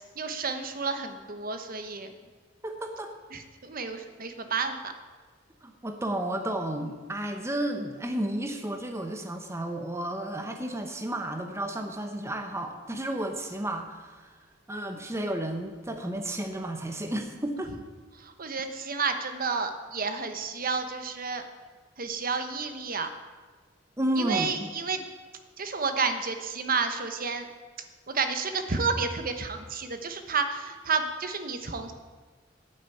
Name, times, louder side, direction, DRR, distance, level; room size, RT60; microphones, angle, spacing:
voice 1, 0.2-2.1 3.3-4.9 18.2-21.4 22.0-23.1 24.2-25.0 25.6-27.5 28.1-31.9, right 4 dB, 50° right, 7 dB, 1.1 m, -30 dB
voice 2, 2.6-3.1 5.6-14.3 14.7-17.7 24.0-24.7, right 1 dB, 15° right, 4 dB, 0.9 m, -32 dB
9.1 x 9.1 x 9.2 m, 1.4 s
head